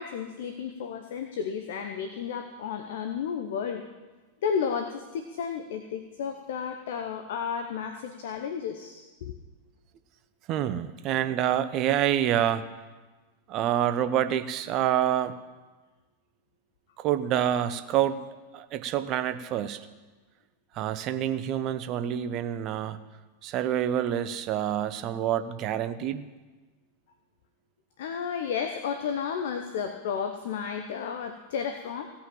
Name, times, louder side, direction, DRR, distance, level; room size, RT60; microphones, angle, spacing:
voice 1, 0.0-3.9 4.4-9.4 28.0-32.1, left 7 dB, 55° left, 6 dB, 0.9 m, -32 dB
voice 2, 10.5-12.7 13.5-15.3 17.0-18.2 18.5-19.8 20.7-23.0 23.4-26.2, right 10 dB, 35° right, 11 dB, 0.8 m, -27 dB
16.5 x 5.7 x 8.8 m, 1.3 s
figure-of-eight pair, 90°, 0 cm